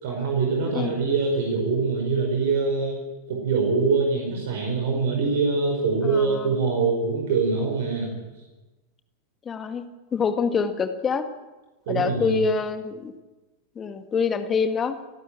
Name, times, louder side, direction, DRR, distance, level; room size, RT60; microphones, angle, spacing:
voice 1, 0.0-3.0 3.3-8.1 11.9-12.4, right 4 dB, 55° right, 2 dB, 5.0 m, -24 dB
voice 2, 6.0-6.6 9.5-9.8 10.1-11.3 11.9-13.1 13.8-15.0, left 6 dB, 20° left, 8 dB, 1.8 m, -25 dB
29.5 x 12.0 x 9.0 m, 1.2 s
figure-of-eight pair, 90°, 0 cm